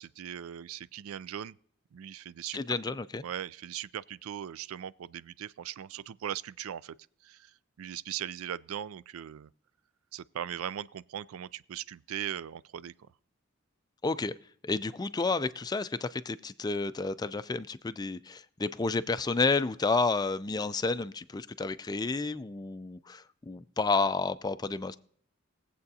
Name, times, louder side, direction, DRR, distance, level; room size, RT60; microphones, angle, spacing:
voice 1, 0.0-1.6 1.9-2.6 3.2-7.0 7.2-9.5 10.1-12.9, right 10 dB, 80° right, 0.4 m, -39 dB
voice 2, 2.5-3.2 14.0-14.3 14.6-25.0, left 3 dB, 20° left, 0.4 m, -30 dB
20.5 x 7.8 x 2.7 m
head